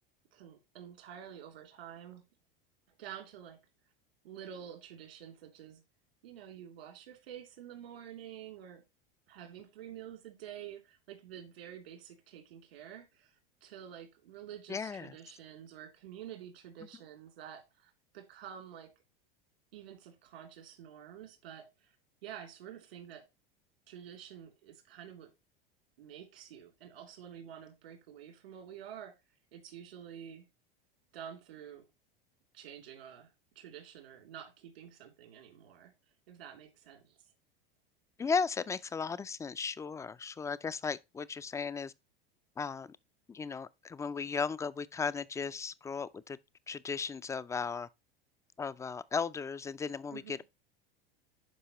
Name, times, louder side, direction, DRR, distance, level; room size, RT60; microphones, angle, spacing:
voice 1, 0.3-2.2 3.0-3.6 4.2-5.8 6.2-8.8 9.3-18.9 19.7-21.9 22.2-23.2 23.9-25.3 26.0-29.1 29.5-30.4 31.1-31.9 32.5-33.3 33.5-35.9 36.3-37.2 50.1-50.4, right 9 dB, 85° right, 3.0 m, -49 dB
voice 2, 14.7-15.2 38.2-41.9 42.6-43.0 43.3-46.4 46.7-47.9 48.6-50.4, left 5 dB, 10° left, 0.3 m, -36 dB
11.5 x 4.7 x 3.0 m
hypercardioid pair, 95°, 30 cm